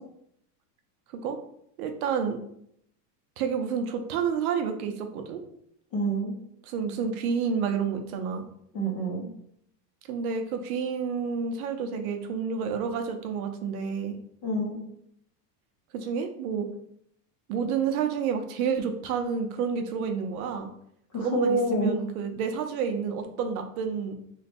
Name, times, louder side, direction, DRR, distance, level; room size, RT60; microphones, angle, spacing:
voice 1, 1.8-2.4 3.4-5.4 6.7-8.4 10.1-14.2 15.9-16.7 17.5-20.7 21.2-24.1, right 6 dB, 65° right, 6 dB, 0.6 m, -29 dB
voice 2, 5.9-6.3 8.7-9.3 14.4-14.8 21.1-21.9, right 1 dB, 30° left, -1 dB, 0.6 m, -27 dB
3.1 x 2.2 x 4.2 m, 0.70 s
supercardioid pair, 180°, 48 cm